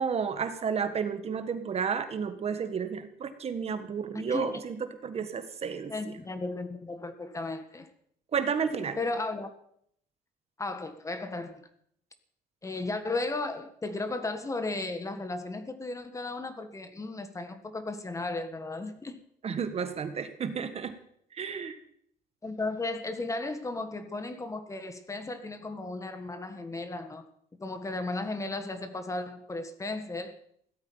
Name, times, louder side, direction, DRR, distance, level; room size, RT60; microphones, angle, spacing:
voice 1, 0.0-5.9 8.3-9.0 19.4-21.0 21.3-21.8, right 6 dB, 40° right, 1.6 m, -32 dB
voice 2, 4.1-4.6 5.9-7.9 9.0-9.5 10.6-11.7 12.6-19.2 22.4-27.2 27.6-30.3, left 2 dB, 20° left, 1.7 m, -35 dB
16.5 x 13.0 x 5.6 m
cardioid pair, 120°, 16 cm